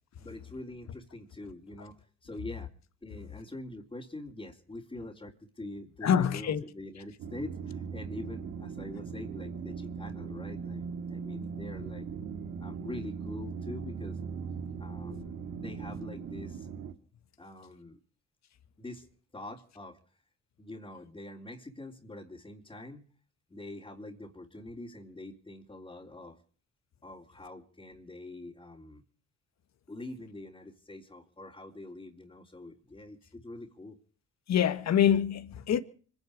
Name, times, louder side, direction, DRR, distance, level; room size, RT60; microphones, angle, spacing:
voice 1, 0.2-2.7 3.0-12.1 12.6-14.2 14.8-16.7 17.4-18.0 18.8-20.0 20.6-23.1 23.5-26.4 27.0-29.0 29.9-34.0, left 2 dB, 15° left, 3.9 m, -44 dB
voice 2, 6.0-6.6 34.5-35.8, left 9 dB, 65° left, 1.9 m, -25 dB
sound 1, 7.2-16.9, right 6 dB, 80° right, 2.1 m, -39 dB
25.5 x 11.0 x 5.0 m
cardioid pair, 90°, 30 cm